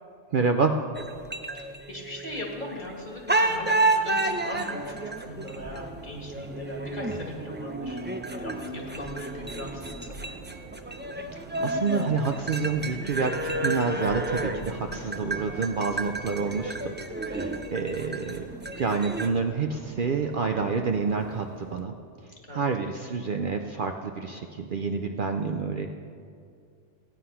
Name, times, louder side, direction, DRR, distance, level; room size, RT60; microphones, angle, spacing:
voice 1, 0.3-0.7 11.3-16.9 17.2-18.5 18.8-21.9 22.5-25.9, right 5 dB, 55° right, 5 dB, 0.7 m, -28 dB
sound 1, 0.9-2.9 3.3-19.3, right 2 dB, 15° right, 0.4 m, -31 dB
voice 2, 1.5-8.0 8.3-10.2 12.7-13.0 22.5-22.7, left 1 dB, 40° left, -1 dB, 2.2 m, -39 dB
Subway metro underground, 4.5-21.8, right 6 dB, 80° right, 1.0 m, -46 dB
15.0 x 9.5 x 5.6 m, 2.4 s
omnidirectional pair, 1.2 m